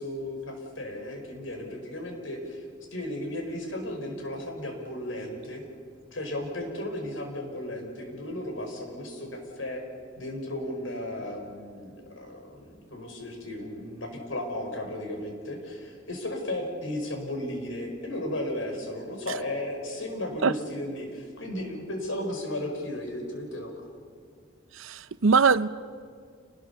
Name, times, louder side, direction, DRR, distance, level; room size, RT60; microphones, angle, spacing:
voice 1, 0.0-2.7 2.9-5.7 6.1-9.8 10.2-23.9, left 1 dB, 80° left, 5.1 m, -35 dB
voice 2, 24.8-25.7, right 5 dB, 90° right, 0.7 m, -21 dB
28.5 x 20.0 x 7.0 m
head